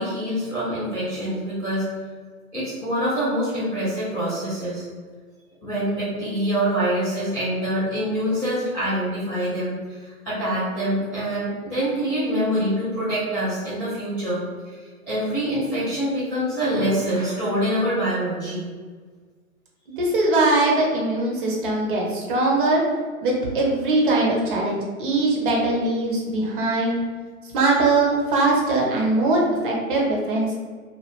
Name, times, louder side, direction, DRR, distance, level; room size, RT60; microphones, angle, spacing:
voice 1, 0.0-1.9 2.5-4.8 5.6-14.7 15.1-18.7, equal, 10° left, -18 dB, 0.3 m, -25 dB
voice 2, 20.0-22.8 23.2-27.0 27.5-30.5, right 2 dB, 35° right, -2 dB, 0.8 m, -21 dB
3.0 x 2.4 x 2.5 m, 1.5 s
hypercardioid pair, 135°, 43 cm